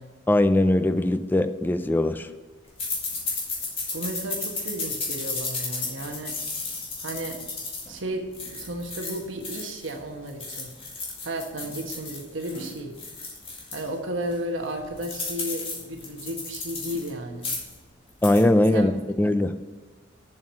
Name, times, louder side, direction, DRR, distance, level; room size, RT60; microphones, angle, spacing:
voice 1, 0.3-2.3 18.2-18.9 19.2-19.5, left 1 dB, 10° left, 10 dB, 0.4 m, -20 dB
sound 1, 2.8-9.9 10.3-13.9 14.3-14.4 14.6-17.1 17.3-17.8 18.1-18.4, left 3 dB, 30° left, 2.1 m, -34 dB
voice 2, 3.9-6.3 7.0-7.4 7.9-10.7 11.2-12.9 13.7-17.5 18.7-18.9, right 1 dB, 80° right, 3 dB, 1.2 m, -33 dB
7.4 x 6.2 x 6.3 m, 1.4 s
head